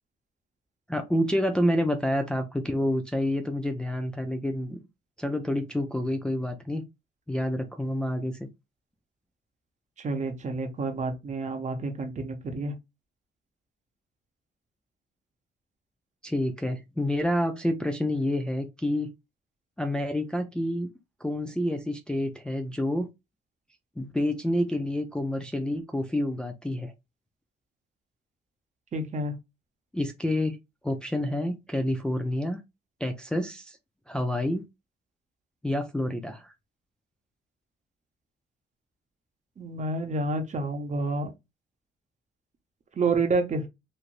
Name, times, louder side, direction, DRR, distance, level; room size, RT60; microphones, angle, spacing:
voice 1, 0.9-4.8 5.2-6.8 7.3-8.5 16.2-19.1 19.8-20.9 21.2-23.1 24.0-26.9 29.9-30.6 30.8-32.6 33.0-33.8 34.1-34.6 35.6-36.5, left 1 dB, 5° left, 0.4 m, -28 dB
voice 2, 10.0-12.7 28.9-29.3 39.6-41.3 43.0-43.7, right 3 dB, 35° right, 0.8 m, -29 dB
3.2 x 2.5 x 2.5 m
cardioid pair, 90°, 20 cm